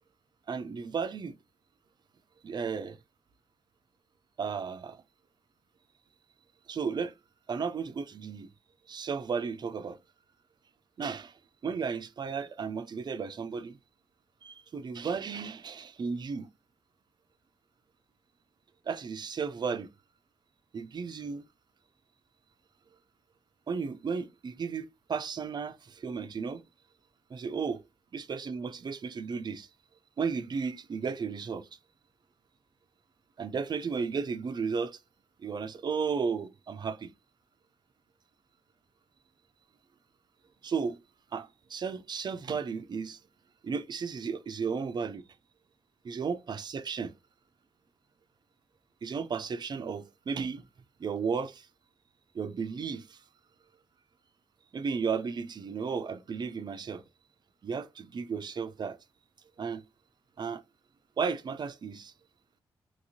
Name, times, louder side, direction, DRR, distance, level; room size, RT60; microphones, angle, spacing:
voice 1, 0.5-1.3 2.4-3.0 4.4-5.0 6.7-7.1 7.5-8.5 8.9-10.0 11.0-13.8 14.4-16.5 18.9-19.9 20.7-21.4 23.7-26.6 27.3-27.8 28.1-29.7 30.2-31.7 33.4-35.0 35.4-37.1 40.6-41.0 41.3-43.2 43.6-45.2 46.0-47.1 49.0-50.6 51.0-51.7 52.3-53.2 54.7-57.0 57.6-59.0 59.6-59.8 60.4-60.6 61.2-62.1, right 5 dB, 45° right, 0.4 m, -34 dB
2.9 x 2.8 x 2.7 m
cardioid pair, 55°, 10 cm